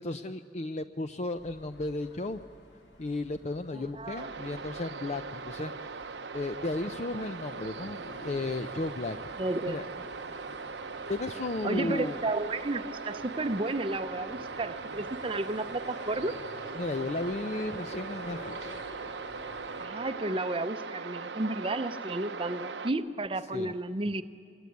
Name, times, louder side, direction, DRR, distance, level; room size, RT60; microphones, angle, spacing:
voice 1, 0.0-2.4 3.0-5.8 6.3-9.2 9.7-9.9 11.1-12.2 16.8-18.8 23.5-23.7, left 2 dB, 40° left, 9 dB, 0.6 m, -34 dB
sound 1, 1.3-19.9, left 1 dB, 85° left, 3.0 m, -50 dB
voice 2, 3.7-4.3 9.4-9.8 11.6-16.4 19.8-24.2, right 2 dB, 30° right, 9 dB, 0.7 m, -32 dB
sound 2, 4.1-22.9, right 4 dB, 80° right, 0.9 m, -40 dB
25.5 x 20.5 x 9.4 m, 2.2 s
head